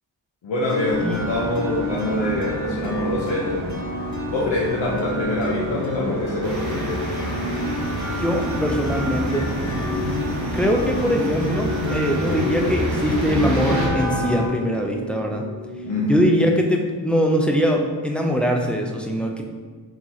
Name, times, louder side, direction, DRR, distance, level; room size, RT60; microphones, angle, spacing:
voice 1, 0.4-3.7 4.3-7.0 15.9-16.2, left 1 dB, 70° left, -6 dB, 0.8 m, -24 dB
sound 1, 0.7-16.3, left 2 dB, 40° left, 1.1 m, -31 dB
sound 2, 0.9-14.5, right 2 dB, 65° right, 0.7 m, -33 dB
sound 3, 6.4-13.9, equal, 90° right, 1.3 m, -27 dB
voice 2, 8.2-9.5 10.5-15.5 16.1-19.4, equal, 5° left, 1 dB, 0.3 m, -22 dB
4.7 x 2.9 x 4.0 m, 1.5 s
wide cardioid pair, 130°, 45 cm